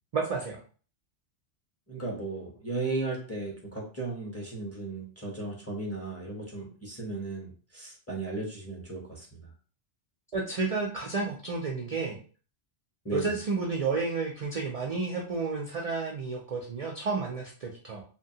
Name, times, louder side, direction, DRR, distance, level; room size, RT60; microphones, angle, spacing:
voice 1, 0.1-0.6 10.3-12.2 13.1-18.0, right 4 dB, 60° right, 0 dB, 0.4 m, -31 dB
voice 2, 1.9-9.4 13.0-13.3, right 3 dB, 15° left, -3 dB, 0.6 m, -35 dB
2.8 x 2.2 x 2.7 m, 0.39 s
omnidirectional pair, 1.2 m